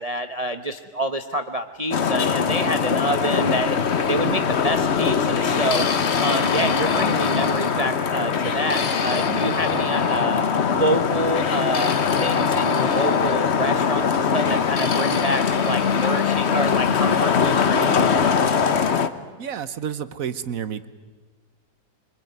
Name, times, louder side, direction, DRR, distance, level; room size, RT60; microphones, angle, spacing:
voice 1, 0.0-3.8 4.1-5.9 6.2-10.4 10.7-18.0, right 1 dB, 30° right, 8 dB, 0.7 m, -27 dB
Traffic noise roadway noise, 1.9-19.1, left 6 dB, 45° left, 1.1 m, -22 dB
sound 1, 5.3-7.9 8.3-10.3 11.3-13.4 14.4-16.5, left 5 dB, 65° left, 2.1 m, -31 dB
voice 2, 19.4-20.9, right 8 dB, 55° right, 14 dB, 1.3 m, -30 dB
25.5 x 22.0 x 9.4 m, 1.3 s
omnidirectional pair, 1.8 m